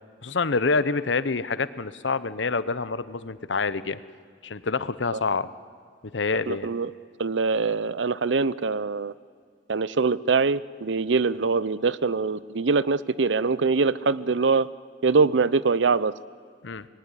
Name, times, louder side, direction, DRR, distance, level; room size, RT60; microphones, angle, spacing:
voice 1, 0.2-4.0 4.4-5.5 6.1-6.7 16.6-16.9, left 4 dB, 90° left, 15 dB, 0.9 m, -27 dB
voice 2, 6.5-6.9 7.2-9.1 9.7-14.7 15.0-16.1, right 4 dB, 85° right, 18 dB, 0.7 m, -23 dB
25.5 x 19.5 x 9.8 m, 2.1 s
head